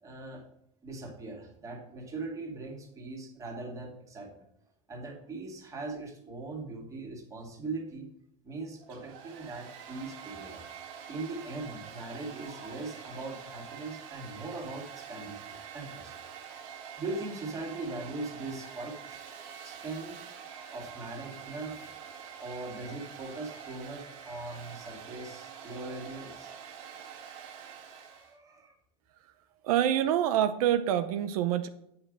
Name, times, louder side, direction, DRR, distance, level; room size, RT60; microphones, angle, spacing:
voice 1, 0.0-0.5 0.8-4.4 4.9-8.1 8.4-10.6 11.1-16.1 17.0-20.2 20.7-22.1 22.4-26.5 27.9-28.7, right 3 dB, 15° right, 1 dB, 2.2 m, -40 dB
Domestic sounds home sounds, 8.8-28.4, right 7 dB, 60° right, 1.9 m, -46 dB
voice 2, 29.6-31.7, right 11 dB, 85° right, 10 dB, 0.7 m, -26 dB
8.9 x 5.7 x 6.4 m, 0.78 s
supercardioid pair, 160°, 18 cm